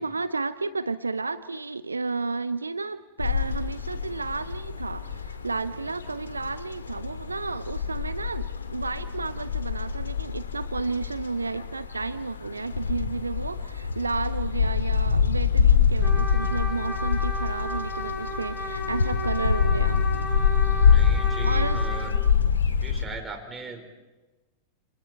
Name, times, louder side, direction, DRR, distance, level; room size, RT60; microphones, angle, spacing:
voice 1, 0.0-20.0 21.4-21.9, right 3 dB, 80° right, 15 dB, 0.7 m, -32 dB
sound 1, 3.2-23.0, left 6 dB, 75° left, 2.1 m, -25 dB
Trumpet, 16.0-22.2, left 1 dB, 25° left, 4.8 m, -34 dB
voice 2, 20.8-22.1 22.8-23.9, right 4 dB, 15° right, 4 dB, 4.9 m, -39 dB
29.5 x 28.5 x 4.5 m, 1.1 s
figure-of-eight pair, 90°, 0 cm